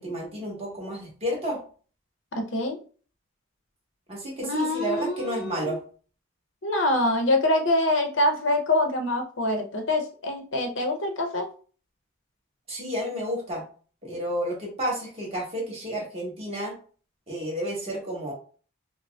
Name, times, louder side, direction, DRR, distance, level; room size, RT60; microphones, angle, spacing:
voice 1, 0.0-1.6 4.1-5.8 12.7-13.6 14.0-16.8 17.3-18.3, equal, 30° right, -3 dB, 1.2 m, -31 dB
voice 2, 2.3-2.8 4.4-5.8 6.6-11.5, left 1 dB, 70° left, 5 dB, 0.7 m, -25 dB
4.9 x 2.0 x 2.2 m, 0.40 s
head